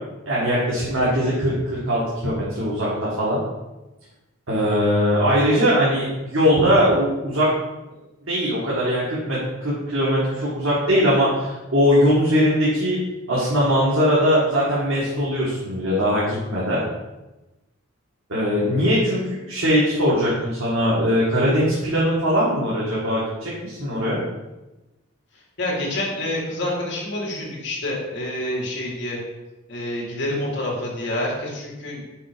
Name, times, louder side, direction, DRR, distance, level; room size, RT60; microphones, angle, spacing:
voice 1, 0.3-3.4 4.5-7.5 8.3-13.0 13.3-16.8 18.3-24.2, equal, 85° right, -7 dB, 1.8 m, -20 dB
voice 2, 25.3-29.2 29.7-32.1, left 1 dB, 60° left, -3 dB, 1.9 m, -28 dB
5.6 x 4.5 x 5.1 m, 1.1 s
head